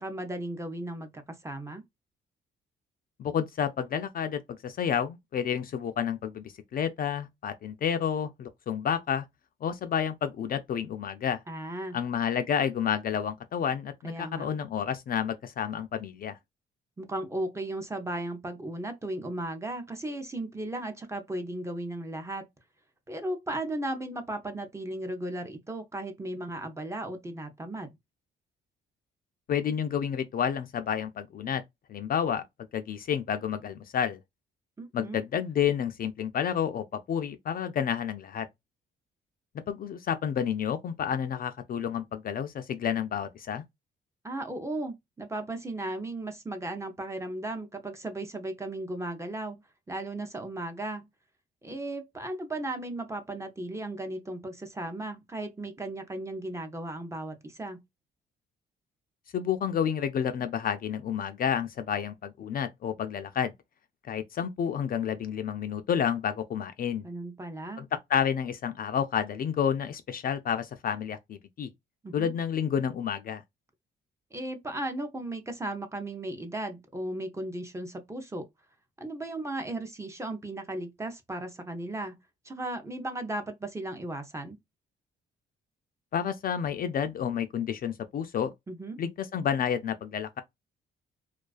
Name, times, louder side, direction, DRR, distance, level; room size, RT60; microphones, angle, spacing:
voice 1, 0.0-1.8 11.5-12.0 14.0-14.5 17.0-22.5 23.1-27.9 34.8-35.2 44.2-49.6 49.9-51.1 51.6-57.8 67.0-67.8 72.0-72.3 74.3-78.5 79.0-82.2 82.5-84.6 88.7-89.0, right 1 dB, 15° right, 0.5 m, -36 dB
voice 2, 3.2-9.2 9.6-11.4 11.9-16.4 29.5-31.6 31.9-32.4 32.7-34.2 34.9-38.5 39.7-43.6 59.3-63.5 64.1-67.0 67.8-71.7 72.1-73.4 86.1-88.5 89.0-90.4, left 8 dB, 45° left, 0.4 m, -30 dB
2.3 x 2.3 x 2.3 m
cardioid pair, 90°, 20 cm